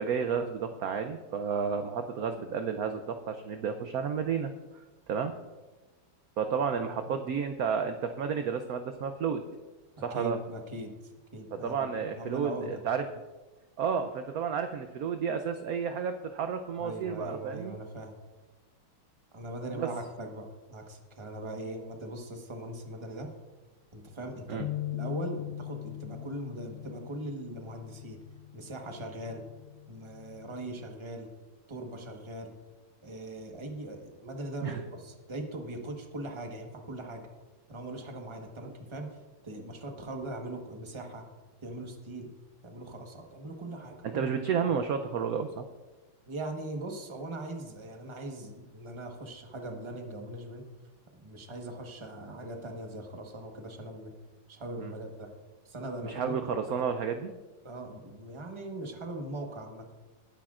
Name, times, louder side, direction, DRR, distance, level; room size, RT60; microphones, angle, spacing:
voice 1, 0.0-5.3 6.4-9.4 10.0-10.4 11.6-13.0 13.8-17.8 19.7-19.9 24.5-24.7 34.6-34.8 44.1-45.6 54.8-54.9 56.0-57.3, right 6 dB, 70° right, 7 dB, 0.8 m, -31 dB
voice 2, 10.0-11.9 12.2-12.8 16.8-18.1 19.3-23.3 23.9-28.2 28.5-29.4 29.9-31.3 31.7-32.5 33.0-37.2 37.7-39.2 39.4-41.2 41.6-42.3 42.6-44.3 46.3-50.6 51.1-54.1 54.5-55.3 55.6-56.4 57.6-59.9, right 1 dB, 20° right, 3 dB, 1.0 m, -40 dB
sound 1, 24.6-30.8, left 15 dB, 90° left, 0.8 m, -41 dB
20.0 x 10.0 x 2.5 m, 1.2 s
omnidirectional pair, 2.2 m